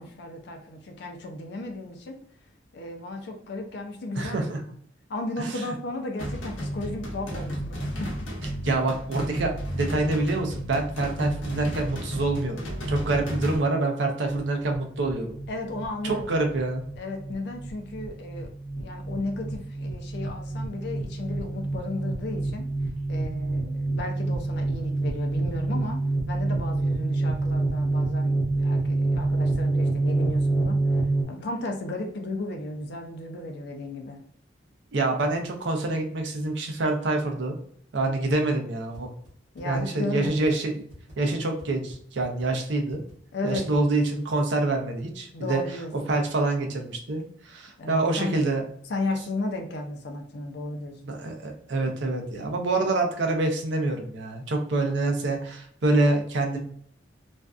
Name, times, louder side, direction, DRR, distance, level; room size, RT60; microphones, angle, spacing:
voice 1, 0.0-2.2 2.7-4.7 5.1-8.1 15.5-16.5 17.0-22.7 23.1-26.0 26.3-30.8 31.3-34.2 39.5-40.3 43.3-43.8 45.3-46.1 47.8-48.4 48.9-50.9, left 2 dB, 60° left, 3 dB, 0.4 m, -34 dB
voice 2, 4.1-4.6 5.4-5.7 8.6-12.6 12.9-15.3 16.0-16.8 34.9-37.6 37.9-39.1 39.6-40.7 41.2-43.0 43.4-45.6 45.9-48.6 51.0-56.6, right 2 dB, 65° right, 3 dB, 0.5 m, -26 dB
sound 1, 6.2-13.6, equal, 85° left, 0.8 m, -32 dB
sound 2, 14.3-31.2, right 2 dB, 5° left, 0.6 m, -27 dB
sound 3, 38.9-39.0 39.3-39.4 39.6-39.8 40.2-40.5 40.9-41.1 41.6-41.7 41.9-42.0 42.2-42.5 42.9-43.1 43.5-43.8, equal, 40° right, 0.8 m, -47 dB
2.5 x 2.2 x 2.3 m, 0.64 s
head